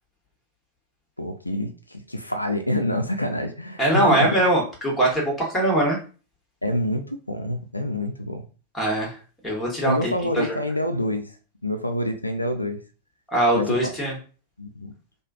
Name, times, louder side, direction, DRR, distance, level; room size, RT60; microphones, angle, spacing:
voice 1, 1.2-4.4 6.6-8.4 9.8-11.3 11.6-12.8 13.5-13.8 14.6-14.9, left 1 dB, 85° left, 7 dB, 0.3 m, -27 dB
voice 2, 3.8-6.0 8.7-9.1 9.4-10.6 13.3-14.1, right 1 dB, 10° left, -2 dB, 1.3 m, -22 dB
3.0 x 2.3 x 2.4 m, 0.37 s
figure-of-eight pair, 90°, 0 cm